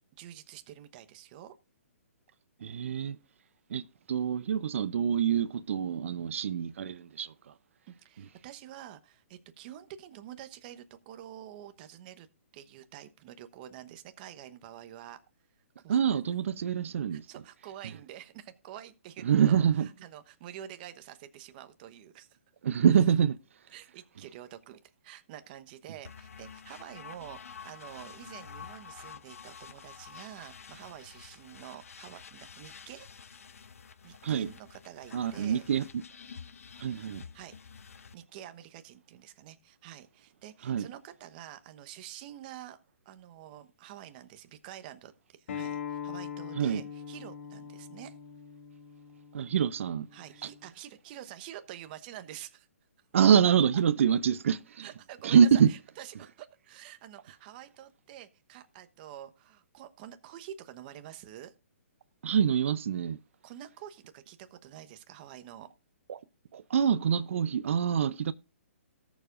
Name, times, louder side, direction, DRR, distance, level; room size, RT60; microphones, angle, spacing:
voice 1, 0.2-1.5 7.9-12.3 12.5-15.2 15.8-16.2 17.1-22.4 22.9-23.0 23.7-33.4 34.0-35.7 37.3-37.8 38.1-42.8 43.0-48.2 50.1-52.7 54.8-61.5 63.4-65.7, right 11 dB, 40° right, 1.1 m, -47 dB
voice 2, 2.6-3.2 3.7-3.8 4.1-7.5 15.9-17.3 19.2-19.9 22.6-23.4 34.2-34.5 35.1-35.9 36.8-37.2 40.6-40.9 46.6-46.8 49.3-50.1 50.4-50.5 53.1-54.9 55.2-55.7 62.2-63.2 66.1-66.2 66.5-68.3, right 8 dB, 65° right, 0.6 m, -25 dB
sound 1, 26.0-38.1, left 6 dB, 75° left, 0.7 m, -49 dB
Acoustic guitar, 45.5-50.7, left 8 dB, 60° left, 1.9 m, -42 dB
18.5 x 7.1 x 2.5 m
hypercardioid pair, 140°, 8 cm